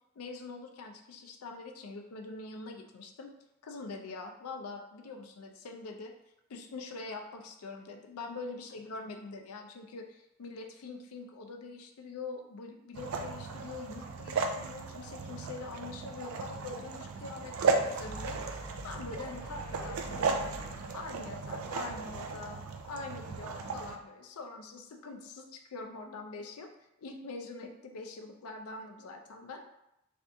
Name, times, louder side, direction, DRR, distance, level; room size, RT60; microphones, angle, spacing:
voice 1, 0.2-3.3 3.6-6.1 6.5-20.6 20.9-22.6 22.9-26.7 27.0-29.6, left 3 dB, 90° left, 4 dB, 0.5 m, -44 dB
sound 1, 12.9-24.0, right 4 dB, 75° right, 0.3 m, -35 dB
sound 2, 17.2-22.6, equal, 10° left, 0.7 m, -48 dB
2.7 x 2.5 x 3.4 m, 0.83 s
head